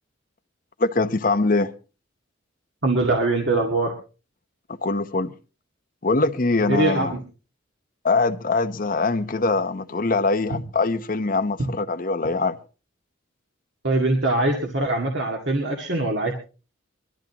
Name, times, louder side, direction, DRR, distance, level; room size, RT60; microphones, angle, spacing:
voice 1, 0.8-1.7 4.8-5.3 6.0-7.1 8.0-12.6, left 3 dB, 45° left, 0.8 m, -23 dB
voice 2, 2.8-3.9 6.7-7.2 13.8-16.3, right 2 dB, 60° right, 2.1 m, -22 dB
22.5 x 13.0 x 2.9 m
head